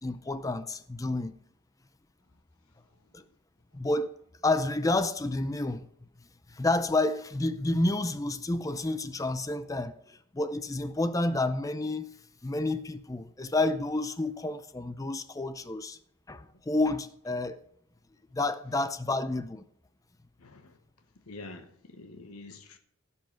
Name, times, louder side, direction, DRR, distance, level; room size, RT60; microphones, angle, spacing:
voice 1, 0.0-1.3 3.1-3.2 3.7-4.1 4.4-5.9 6.5-12.1 12.4-16.0 16.3-17.6 18.3-19.6, left 2 dB, 15° left, 0.4 m, -30 dB
voice 2, 20.4-20.8 21.3-22.8, left 2 dB, 90° left, 1.1 m, -46 dB
16.5 x 5.6 x 5.2 m
head